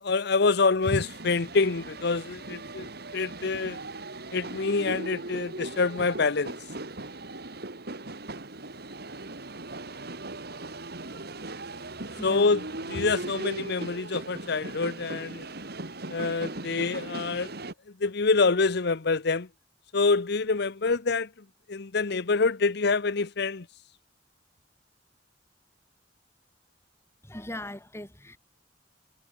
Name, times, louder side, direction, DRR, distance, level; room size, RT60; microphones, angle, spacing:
voice 1, 0.0-2.9 3.1-3.8 4.3-6.5 12.2-12.6 12.9-15.5 16.1-17.5 18.0-19.5 19.9-21.3 21.7-23.7, left 4 dB, 60° left, 0.8 m, -26 dB
sound 1, 0.8-17.7, right 2 dB, 60° right, 3.5 m, -39 dB
voice 2, 12.2-12.6 27.2-28.4, left 1 dB, 15° left, 4.0 m, -39 dB
head